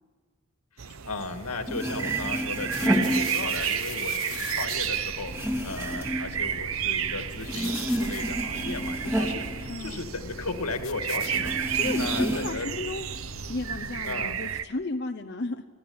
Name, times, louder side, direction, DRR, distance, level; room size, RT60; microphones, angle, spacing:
sound 1, 0.8-14.6, right 9 dB, 70° right, 0.8 m, -32 dB
voice 1, 1.0-12.7 14.0-14.4, left 3 dB, 90° left, 7 dB, 2.1 m, -36 dB
sound 2, 1.4-1.5 1.6-3.9 4.2-7.1 7.4-10.4 10.7-10.8 11.2-12.7 13.1-13.9, equal, 10° right, 2.5 m, -30 dB
sound 3, 2.7-14.5, left 4 dB, 70° left, 1.6 m, -42 dB
voice 2, 9.7-10.0 11.7-13.1 13.5-15.6, left 2 dB, 50° left, 5 dB, 0.9 m, -33 dB
25.5 x 15.0 x 8.7 m, 1.5 s
head